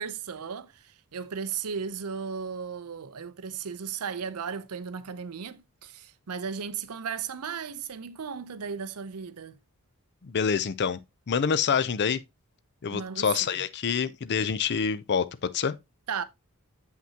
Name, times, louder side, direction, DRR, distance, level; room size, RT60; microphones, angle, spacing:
voice 1, 0.0-9.6 12.9-13.6 16.1-16.2, right 6 dB, 85° right, 0.6 m, -35 dB
voice 2, 10.2-11.0 11.3-12.2 12.8-15.7, left 6 dB, 50° left, 0.5 m, -26 dB
7.6 x 5.9 x 2.8 m
head